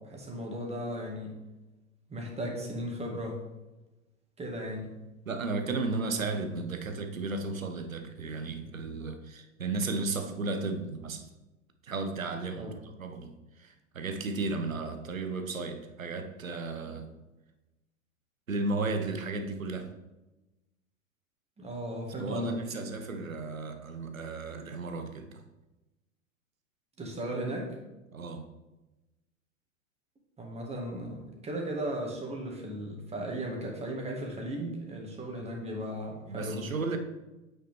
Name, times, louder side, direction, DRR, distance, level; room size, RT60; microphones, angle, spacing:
voice 1, 0.0-1.4 2.1-3.4 4.4-4.9 12.6-12.8 21.6-22.6 27.0-27.7 30.4-36.7, right 1 dB, 15° right, 0 dB, 1.9 m, -36 dB
voice 2, 5.3-11.3 11.8-17.1 18.5-19.9 22.2-25.4 28.1-28.4 36.3-37.0, right 3 dB, 80° right, 7 dB, 1.0 m, -34 dB
8.5 x 5.6 x 3.6 m, 1.0 s
figure-of-eight pair, 95°, 40 cm